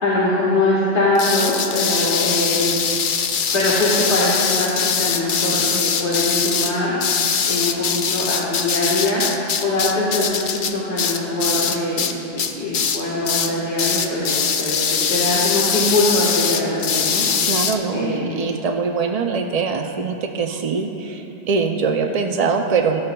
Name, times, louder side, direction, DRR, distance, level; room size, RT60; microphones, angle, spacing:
voice 1, 0.0-2.7 3.5-6.9 7.5-9.2 9.6-17.2 17.9-18.4, left 2 dB, 70° left, -8 dB, 1.8 m, -22 dB
sound 1, 1.1-12.1 12.4-13.0 13.2-13.5 13.8-17.7, left 6 dB, 55° left, 0.6 m, -22 dB
voice 2, 17.4-23.0, right 5 dB, 60° right, 4 dB, 0.4 m, -22 dB
13.0 x 12.5 x 2.2 m, 2.9 s
omnidirectional pair, 1.2 m